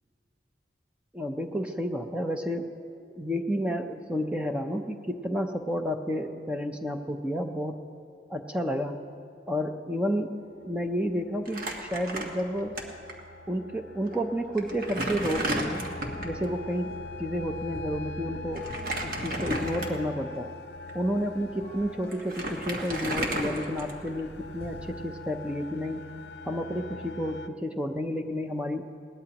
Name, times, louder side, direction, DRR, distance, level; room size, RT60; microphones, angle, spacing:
voice 1, 1.1-2.7 3.1-7.8 8.3-9.0 9.5-12.8 13.5-15.8 16.2-16.9 17.2-18.7 19.0-20.5 20.9-26.1 26.4-28.9, equal, 5° right, 4 dB, 0.6 m, -31 dB
sound 1, 10.3-27.5, left 3 dB, 70° left, 0.6 m, -43 dB
Crumpling crinkling, 11.5-12.8 13.1-13.2 14.1-14.2 14.6-16.4 18.6-20.2 20.8-20.9 21.8-21.9 22.1-24.2, right 1 dB, 50° right, 1.5 m, -33 dB
sound 2, 15.9-25.1, equal, 15° left, 2.7 m, -47 dB
21.0 x 18.5 x 3.0 m, 2.4 s
head